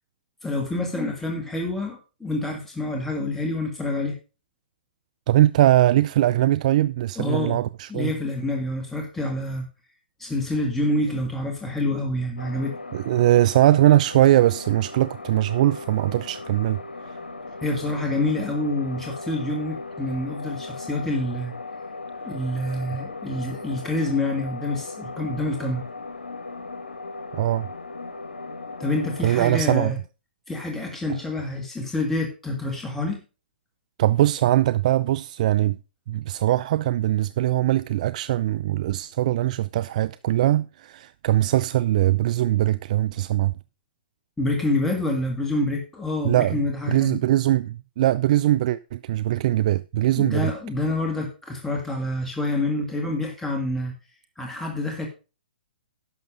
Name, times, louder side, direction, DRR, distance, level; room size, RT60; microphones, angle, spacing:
voice 1, 0.4-4.2 7.2-7.6 7.9-9.7 10.2-12.8 17.6-21.5 22.3-25.8 28.8-30.0 30.5-33.2 44.4-47.2 50.2-53.9 54.4-55.1, left 2 dB, 5° left, 1.8 m, -27 dB
voice 2, 5.3-8.1 12.9-16.8 17.1-17.2 27.3-27.7 29.2-29.9 34.0-35.8 36.1-43.5 46.2-46.6 46.9-50.5, right 14 dB, 45° right, 0.4 m, -21 dB
sound 1, 12.4-29.4, left 3 dB, 90° left, 1.3 m, -38 dB
11.0 x 6.6 x 5.0 m
hypercardioid pair, 130°, 5 cm